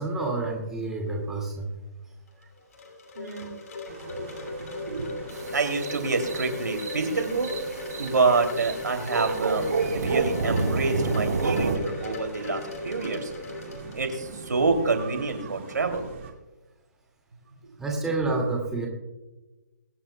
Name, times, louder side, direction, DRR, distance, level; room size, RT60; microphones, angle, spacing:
voice 1, 0.0-1.7 17.8-18.9, right 3 dB, 5° right, -2 dB, 2.2 m, -28 dB
Wind chime, 2.3-14.5, left 3 dB, 65° left, 3.0 m, -38 dB
voice 2, 3.1-3.5 3.9-5.1 5.5-7.5 8.0-9.7 9.9-13.3 13.9-16.1, right 4 dB, 85° right, 5 dB, 2.8 m, -27 dB
sound 1, 3.9-16.3, right 6 dB, 45° right, 2.4 m, -44 dB
sound 2, 5.3-11.8, right 4 dB, 70° right, 3.7 m, -29 dB
22.5 x 9.7 x 2.2 m, 1.1 s
hypercardioid pair, 155°, 9 cm